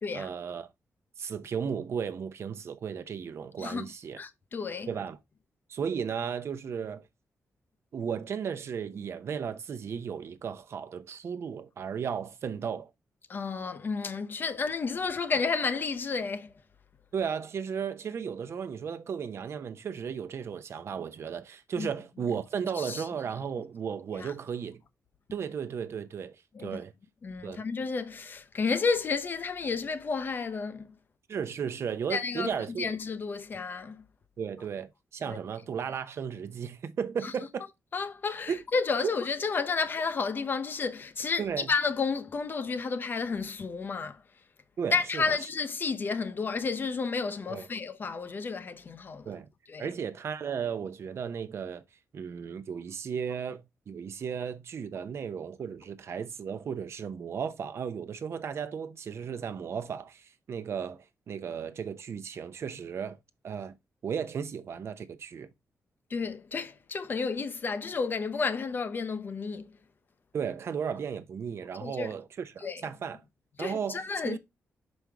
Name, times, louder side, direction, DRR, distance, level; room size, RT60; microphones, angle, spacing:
voice 1, 0.1-0.7 1.2-4.2 4.9-5.2 5.7-7.1 7.9-12.9 17.1-24.8 25.3-26.9 27.4-27.6 31.3-32.9 34.4-37.7 38.5-38.6 39.0-39.1 41.4-41.7 44.8-45.4 47.5-47.7 49.2-49.5 49.8-51.8 52.1-63.2 63.4-63.7 64.0-65.5 70.3-73.2 73.6-74.4, right 7 dB, 55° right, 0.8 m, -35 dB
voice 2, 3.6-3.9 4.1-4.9 13.3-16.5 21.8-21.9 22.7-23.0 24.2-24.3 26.5-26.8 27.2-30.9 32.1-34.0 35.3-35.4 37.2-37.3 37.9-44.2 44.9-49.4 49.7-49.9 66.1-69.7 71.8-72.1 72.6-72.8 73.6-74.4, left 4 dB, 40° left, 0.7 m, -31 dB
6.1 x 5.2 x 3.4 m
wide cardioid pair, 150°, 5 cm